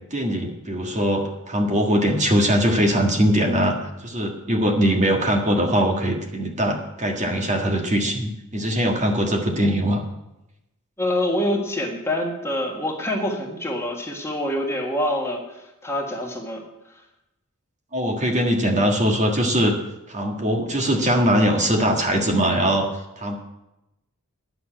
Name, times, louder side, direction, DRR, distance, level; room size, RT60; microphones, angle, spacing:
voice 1, 0.1-10.0 17.9-19.8 20.1-22.9 23.2-23.4, equal, 35° right, 1 dB, 1.7 m, -21 dB
voice 2, 11.0-15.4 15.8-16.6, left 1 dB, 10° left, 0 dB, 1.6 m, -25 dB
11.0 x 6.8 x 8.9 m, 0.91 s
head